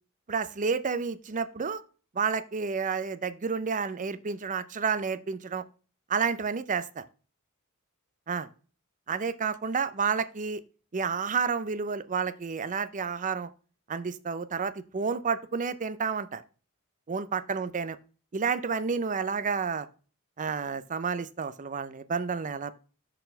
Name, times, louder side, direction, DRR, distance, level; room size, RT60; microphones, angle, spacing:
voice 1, 0.3-1.8 2.1-5.6 6.1-7.0 8.3-8.5 9.1-10.6 10.9-13.5 13.9-16.4 17.1-18.0 18.3-19.9 20.4-22.7, right 5 dB, 35° right, 13 dB, 0.5 m, -30 dB
6.7 x 4.2 x 5.6 m, 0.35 s
head